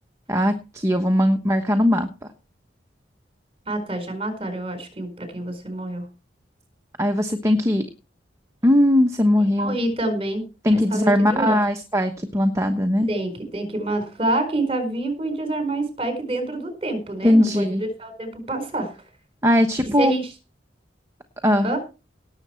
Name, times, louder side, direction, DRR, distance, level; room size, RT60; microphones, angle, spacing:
voice 1, 0.3-2.1 7.0-7.8 8.6-9.8 10.6-13.1 17.2-17.8 19.4-20.1 21.4-21.7, left 1 dB, 15° right, 5 dB, 1.1 m, -19 dB
voice 2, 3.7-6.0 9.6-10.4 10.7-11.6 13.1-19.0 20.0-20.3 21.6-21.8, right 2 dB, 30° right, 8 dB, 4.4 m, -27 dB
18.0 x 7.5 x 4.4 m, 0.31 s
head